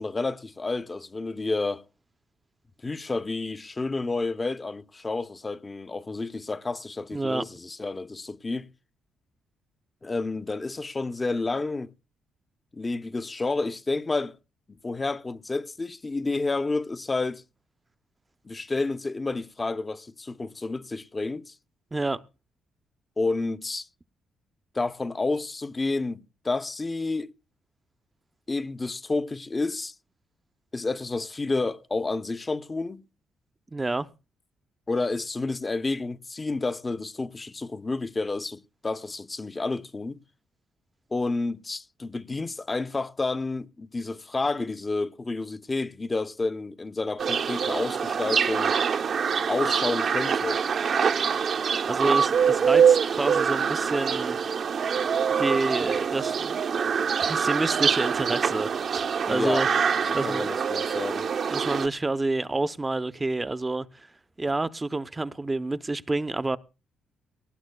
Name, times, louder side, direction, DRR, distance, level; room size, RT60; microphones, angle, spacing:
voice 1, 0.0-1.8 2.8-8.7 10.0-11.9 12.7-14.4 14.8-17.4 18.4-21.5 23.2-23.9 24.7-27.3 28.5-29.9 30.7-33.0 34.9-40.2 41.1-48.8 49.5-50.6 59.3-59.7 60.0-61.3, left 3 dB, 25° left, 0.7 m, -30 dB
voice 2, 7.1-7.4 21.9-22.2 33.7-34.1 51.9-54.4 55.4-56.6 57.2-59.7 60.1-60.5 61.5-64.1 64.4-66.6, right 2 dB, 20° right, 0.7 m, -28 dB
sound 1, 47.2-61.9, right 7 dB, 55° right, 0.8 m, -24 dB
19.5 x 18.5 x 2.3 m
cardioid pair, 90°, 0 cm